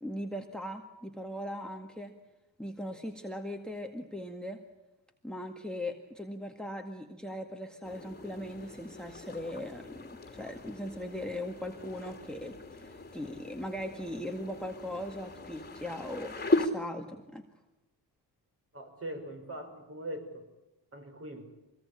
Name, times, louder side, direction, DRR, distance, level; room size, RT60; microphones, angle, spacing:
voice 1, 0.0-2.1 2.6-4.6 5.2-17.5, left 1 dB, ahead, 5 dB, 1.9 m, -39 dB
sound 1, 7.8-16.7, left 2 dB, 20° left, 2.9 m, -37 dB
voice 2, 18.7-20.5 20.9-21.5, right 1 dB, 30° right, 5 dB, 5.5 m, -41 dB
24.5 x 19.0 x 8.7 m, 1.0 s
cardioid pair, 95°, 44 cm